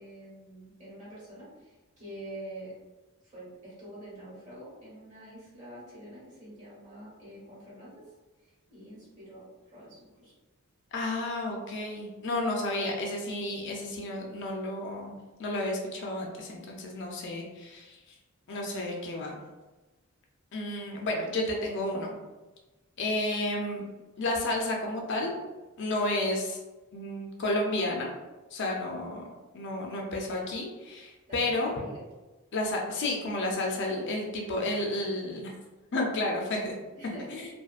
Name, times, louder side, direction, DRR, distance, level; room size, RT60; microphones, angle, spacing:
voice 1, 0.0-2.7 3.2-7.9 8.4-9.5 9.7-10.3 31.3-32.0 33.8-34.3 36.9-37.5, right 1 dB, 35° right, -7 dB, 1.3 m, -46 dB
voice 2, 10.9-15.1 15.4-18.1 18.5-19.4 20.5-22.2 23.0-23.8 24.2-25.3 25.8-26.6 26.9-28.1 28.5-29.2 29.5-31.7 32.5-35.5 35.9-36.8 37.3-37.5, left 1 dB, 55° left, 0 dB, 0.5 m, -31 dB
2.6 x 2.3 x 2.4 m, 1.2 s
head